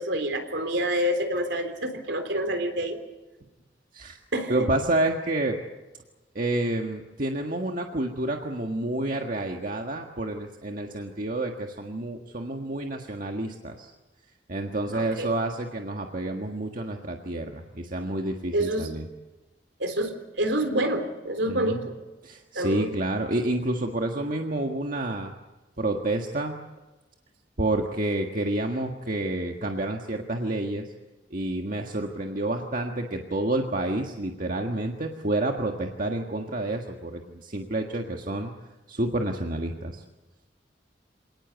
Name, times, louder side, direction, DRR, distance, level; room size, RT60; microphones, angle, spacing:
voice 1, 0.0-3.0 4.3-4.7 14.9-15.3 18.5-18.9 19.8-21.9 22.6-22.9, right 1 dB, 75° right, 7 dB, 3.7 m, -27 dB
voice 2, 4.5-5.6 6.3-13.9 14.5-19.0 21.5-21.8 22.2-25.3 25.8-26.6 27.6-30.9 31.3-38.5 38.9-40.0, right 1 dB, 50° right, 2 dB, 1.7 m, -29 dB
27.0 x 19.0 x 8.2 m, 1.1 s
head